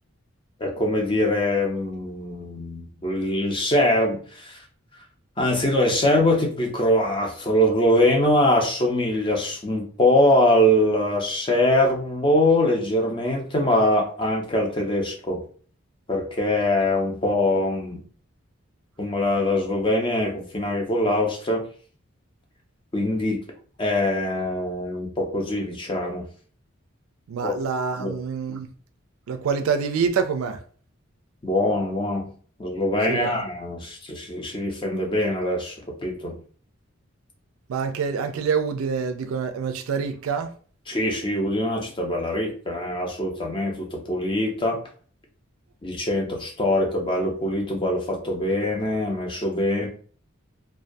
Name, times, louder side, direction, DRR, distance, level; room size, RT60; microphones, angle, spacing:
voice 1, 0.6-4.6 5.4-15.4 16.1-18.0 19.0-21.6 22.9-23.4 23.8-26.3 27.4-27.5 28.0-28.1 31.4-32.3 32.6-36.4 40.9-44.8 45.8-49.9, left 1 dB, 25° left, 0.4 m, -23 dB
voice 2, 27.3-28.7 29.3-30.6 33.1-33.4 37.7-40.6, right 6 dB, 90° right, 0.3 m, -26 dB
2.2 x 2.2 x 2.5 m
head